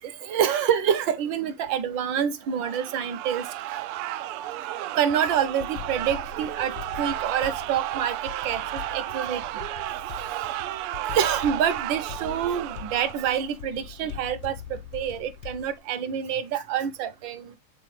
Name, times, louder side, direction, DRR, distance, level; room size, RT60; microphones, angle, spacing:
voice 1, 0.0-3.4 3.7-3.8 5.0-9.6 11.1-17.6, right 8 dB, 65° right, 1.4 m, -27 dB
sound 1, 2.6-13.5, right 13 dB, 85° right, 1.5 m, -33 dB
sound 2, 5.1-15.8, left 7 dB, 70° left, 1.2 m, -42 dB
7.7 x 4.1 x 3.2 m
omnidirectional pair, 2.4 m